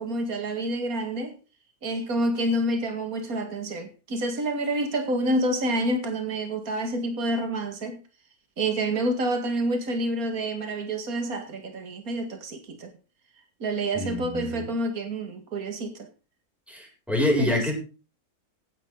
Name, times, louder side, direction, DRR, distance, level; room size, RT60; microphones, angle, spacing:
voice 1, 0.0-1.3 1.8-8.0 8.6-12.9 13.6-16.1 17.4-17.7, right 1 dB, 70° right, 2.5 m, -28 dB
voice 2, 13.9-14.6 16.7-17.7, left 1 dB, ahead, 7.0 m, -26 dB
15.5 x 11.0 x 4.0 m
omnidirectional pair, 1.6 m